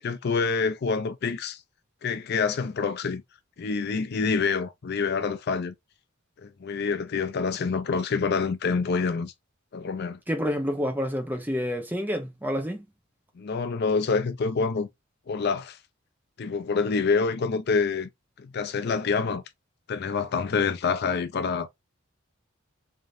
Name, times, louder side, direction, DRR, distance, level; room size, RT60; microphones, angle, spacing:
voice 1, 0.0-1.6 2.0-3.2 3.6-5.7 6.4-9.3 9.7-10.2 13.4-14.9 15.3-15.8 16.4-18.1 18.4-19.4 19.9-21.7, left 5 dB, 55° left, 0.4 m, -27 dB
voice 2, 10.3-12.9, equal, 10° right, 0.9 m, -28 dB
3.6 x 3.4 x 2.5 m
head